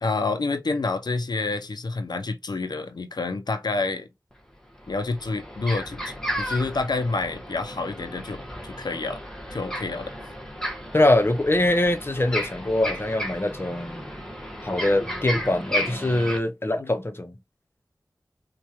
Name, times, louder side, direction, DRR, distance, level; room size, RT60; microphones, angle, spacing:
voice 1, 0.0-4.1 4.9-9.2 9.5-10.1 16.8-16.9, left 3 dB, 70° left, 0.5 m, -28 dB
sound 1, 4.3-4.4 4.8-16.4, equal, 10° left, 1.2 m, -34 dB
voice 2, 10.9-14.1 14.6-17.4, left 1 dB, 30° left, 0.7 m, -23 dB
4.4 x 2.3 x 2.9 m
wide cardioid pair, 55°, 7 cm